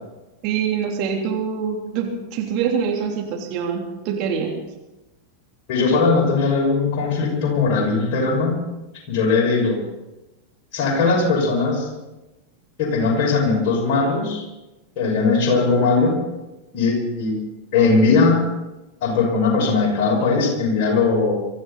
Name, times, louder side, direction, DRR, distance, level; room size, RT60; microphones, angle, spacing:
voice 1, 0.4-4.6, right 7 dB, 40° right, 0 dB, 3.4 m, -25 dB
voice 2, 5.7-8.6 9.1-9.8 10.7-11.9 12.8-14.4 15.0-16.2 16.7-17.4 17.7-18.4 19.0-21.3, left 4 dB, 45° left, -1 dB, 6.1 m, -19 dB
24.0 x 14.0 x 4.2 m, 1.0 s
figure-of-eight pair, 90°, 0 cm